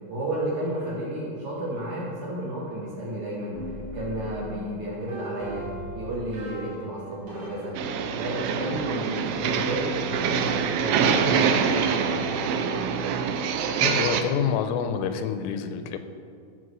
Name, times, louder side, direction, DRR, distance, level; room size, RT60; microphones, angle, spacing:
voice 1, 0.1-5.7 6.0-7.7 8.2-10.3 10.8-12.2, right 1 dB, 55° right, -7 dB, 2.1 m, -32 dB
sound 1, 3.5-9.5 10.1-13.3, equal, 40° right, 3.0 m, -40 dB
sound 2, 7.8-14.2, right 6 dB, 80° right, 2.5 m, -25 dB
voice 2, 13.8-16.0, left 7 dB, 85° left, 9 dB, 3.1 m, -27 dB
14.0 x 5.4 x 6.3 m, 2.3 s
omnidirectional pair, 5.7 m